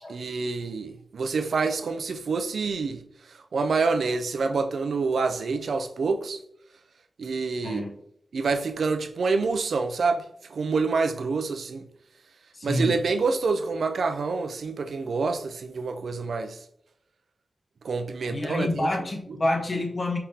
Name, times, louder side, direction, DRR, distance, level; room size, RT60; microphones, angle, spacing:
voice 1, 0.1-3.0 3.5-6.4 7.2-7.8 8.3-10.2 10.5-11.8 12.6-16.6 17.8-18.9, right 4 dB, 75° right, 0.4 m, -27 dB
voice 2, 7.6-8.0 12.5-13.0 18.3-20.2, left 2 dB, 35° left, 0.7 m, -28 dB
4.9 x 3.6 x 2.8 m
wide cardioid pair, 140°, 0 cm